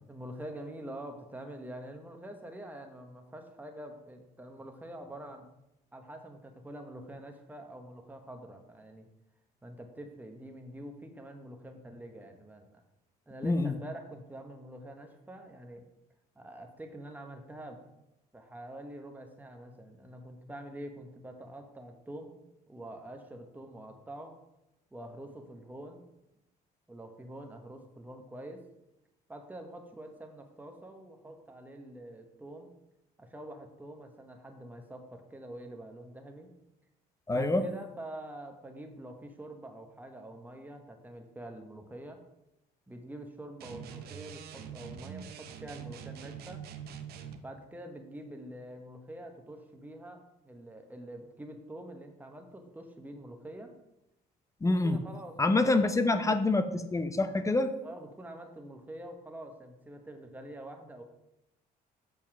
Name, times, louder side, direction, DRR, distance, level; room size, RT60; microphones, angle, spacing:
voice 1, 0.1-5.5 5.9-9.1 9.6-12.8 13.3-15.9 16.3-17.8 18.3-24.4 24.9-26.0 26.9-28.6 29.3-32.7 33.2-36.5 37.3-42.2 42.9-46.6 47.4-53.7 54.6-55.5 56.0-56.4 57.8-61.0, right 1 dB, 10° right, 4 dB, 1.3 m, -46 dB
voice 2, 13.4-13.7 37.3-37.7 54.6-55.0 55.4-57.7, left 2 dB, 20° left, 10 dB, 0.7 m, -26 dB
sound 1, 43.6-47.4, right 8 dB, 70° right, 0.9 m, -44 dB
7.2 x 5.5 x 6.1 m, 0.89 s
cardioid pair, 110°, 17 cm